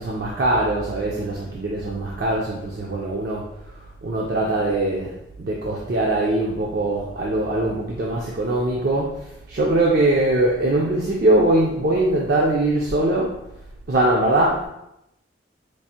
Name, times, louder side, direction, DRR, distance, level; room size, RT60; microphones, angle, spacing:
voice 1, 0.0-3.5 3.7-13.4 13.9-14.7, right 1 dB, 50° right, -3 dB, 0.4 m, -22 dB
4.6 x 2.4 x 2.8 m, 0.85 s
head